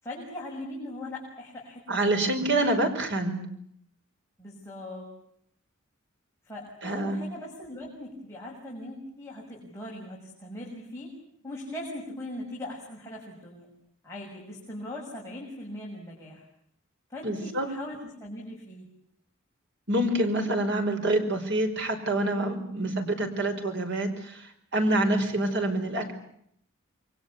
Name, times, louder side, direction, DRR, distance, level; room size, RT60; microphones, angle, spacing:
voice 1, 0.0-2.2 4.4-5.1 6.4-11.1 11.4-13.7 14.0-16.5 17.1-18.9, left 1 dB, 15° left, -4 dB, 6.5 m, -40 dB
voice 2, 1.9-3.4 6.8-7.2 17.2-17.7 19.9-24.5 24.7-26.1, right 1 dB, 60° right, 5 dB, 5.4 m, -26 dB
28.5 x 23.0 x 8.5 m, 0.71 s
head